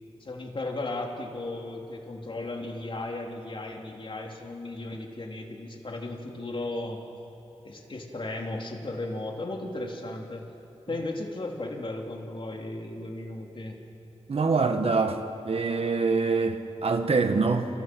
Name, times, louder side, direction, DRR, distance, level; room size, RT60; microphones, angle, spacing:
voice 1, 0.2-7.0 7.6-10.4 10.9-13.8, left 2 dB, 50° left, 0 dB, 3.4 m, -35 dB
voice 2, 14.3-15.2 15.4-17.7, right 4 dB, 60° right, 6 dB, 1.6 m, -24 dB
29.5 x 29.5 x 6.2 m, 3.0 s
wide cardioid pair, 100°, 12 cm